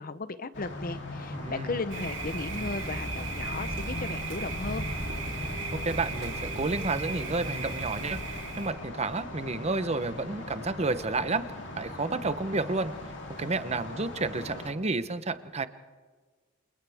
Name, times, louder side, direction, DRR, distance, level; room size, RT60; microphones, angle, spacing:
voice 1, 0.0-4.9, left 3 dB, 50° left, 13 dB, 0.9 m, -35 dB
sound 1, 0.5-14.7, left 1 dB, 65° left, 3.3 m, -40 dB
voice 2, 1.3-1.8 5.7-11.4 11.8-12.9 13.4-15.7, right 3 dB, 35° right, 12 dB, 0.9 m, -31 dB
Thunder, 1.9-8.7, right 2 dB, 70° right, 3.2 m, -35 dB
28.0 x 28.0 x 3.6 m, 1.4 s
head